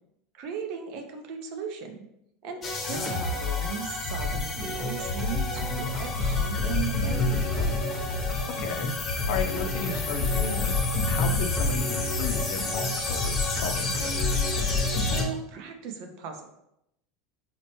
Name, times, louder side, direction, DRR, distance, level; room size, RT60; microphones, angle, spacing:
voice 1, 0.3-2.0 2.4-7.8 15.0-16.5, right 6 dB, 60° right, 5 dB, 0.6 m, -37 dB
sound 1, 2.6-15.2, left 3 dB, 30° left, 0.8 m, -27 dB
voice 2, 8.5-8.9 9.3-14.3, left 5 dB, 65° left, 6 dB, 0.5 m, -35 dB
4.2 x 2.1 x 3.0 m, 0.80 s
supercardioid pair, 105°, 0 cm